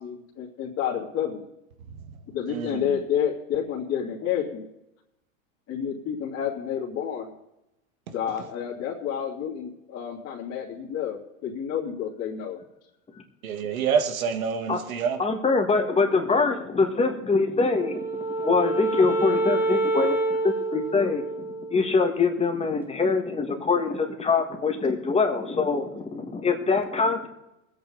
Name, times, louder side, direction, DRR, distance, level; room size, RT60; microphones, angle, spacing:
voice 1, 0.0-1.5 2.3-4.6 5.7-7.3 8.1-12.6, left 8 dB, 35° left, 2.8 m, -30 dB
voice 2, 2.5-2.9 13.4-15.2, right 6 dB, 80° right, 1.8 m, -27 dB
voice 3, 15.2-18.1 18.4-20.2 20.4-27.3, left 4 dB, 15° left, 1.9 m, -24 dB
Wind instrument woodwind instrument, 17.7-22.1, right 2 dB, 5° right, 2.1 m, -27 dB
21.5 x 8.6 x 4.0 m
hypercardioid pair, 105°, 41 cm